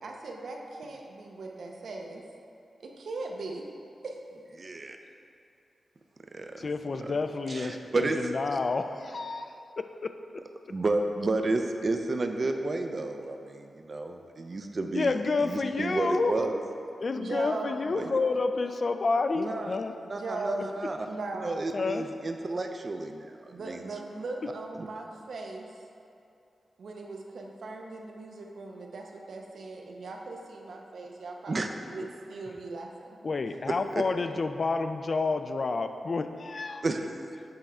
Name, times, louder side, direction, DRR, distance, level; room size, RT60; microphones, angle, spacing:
voice 1, 0.0-2.2 2.8-3.6 4.0-4.2 17.1-17.8 20.0-20.7 21.0-21.6 23.5-25.8 26.8-33.2, right 2 dB, 75° right, 1 dB, 0.7 m, -39 dB
voice 2, 4.6-5.0 6.3-6.7 7.0-7.1 7.5-8.3 10.7-15.1 15.4-16.6 18.0-18.1 19.3-19.7 20.1-21.0 21.4-23.9 24.8-24.9 31.5-31.7 33.9-34.0 36.8-37.0, right 2 dB, 40° right, 5 dB, 0.4 m, -31 dB
voice 3, 6.6-10.1 14.9-16.4 17.0-19.9 21.7-22.1 33.2-36.8, left 3 dB, 45° left, 8 dB, 0.3 m, -29 dB
7.8 x 3.5 x 4.3 m, 2.6 s
wide cardioid pair, 130°, 0 cm